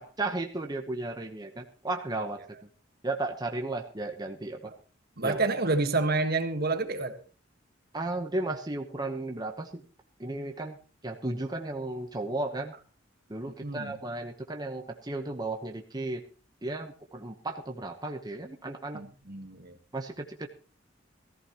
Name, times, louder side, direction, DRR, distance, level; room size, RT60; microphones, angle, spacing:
voice 1, 0.2-2.4 3.0-4.7 5.2-5.4 7.9-9.8 10.2-10.8 11.0-12.7 13.3-16.3 16.6-19.0 19.9-20.5, right 2 dB, 20° right, 3 dB, 1.0 m, -34 dB
voice 2, 5.2-7.2 13.6-14.0 18.9-19.8, right 3 dB, 55° right, 8 dB, 1.6 m, -28 dB
19.0 x 14.5 x 3.0 m, 0.35 s
head